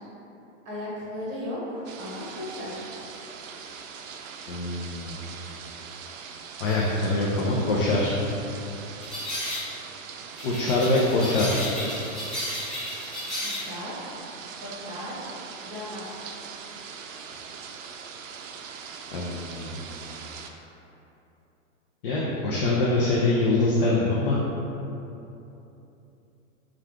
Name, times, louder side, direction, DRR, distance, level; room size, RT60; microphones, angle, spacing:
voice 1, 0.6-2.9 13.4-14.2 14.5-15.3 15.6-16.4, left 1 dB, 35° right, -7 dB, 1.4 m, -36 dB
sound 1, 1.8-20.5, right 6 dB, 70° right, 0.5 m, -41 dB
voice 2, 4.5-5.2 6.6-8.2 10.4-11.7 19.1-19.8 22.0-24.4, left 2 dB, 40° left, -5 dB, 0.5 m, -24 dB
sound 2, 6.7-6.8 9.0-9.7 10.4-13.7, left 1 dB, ahead, 0.8 m, -33 dB
4.4 x 2.4 x 3.5 m, 2.9 s
hypercardioid pair, 155°, 41 cm